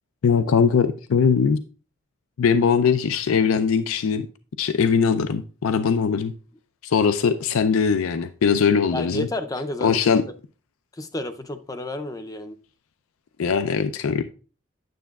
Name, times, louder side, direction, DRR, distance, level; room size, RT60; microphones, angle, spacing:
voice 1, 0.2-1.6 2.4-4.3 4.6-6.3 6.8-9.3 9.8-10.2 13.4-14.2, left 6 dB, 85° left, 0.4 m, -20 dB
voice 2, 8.9-10.0 11.0-12.6, left 1 dB, 15° left, 0.5 m, -31 dB
9.3 x 7.3 x 2.3 m
head